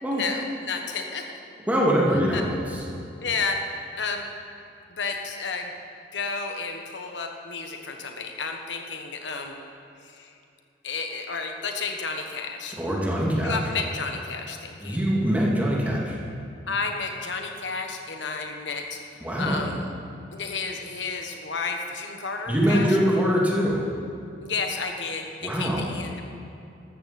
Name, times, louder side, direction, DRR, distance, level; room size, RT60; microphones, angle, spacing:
voice 1, 0.1-1.3 2.3-2.4 3.2-3.6 4.0-4.2 4.9-5.7 6.1-9.6 10.0-10.3 10.8-12.8 13.4-15.0 16.7-19.0 19.4-19.9 20.3-22.9 24.4-26.2, left 4 dB, 80° left, 3 dB, 1.3 m, -31 dB
voice 2, 1.7-2.8 12.8-13.6 14.8-16.2 19.2-19.6 22.5-23.8 25.4-25.9, equal, 10° right, -4 dB, 2.3 m, -23 dB
13.5 x 13.5 x 4.3 m, 2.6 s
head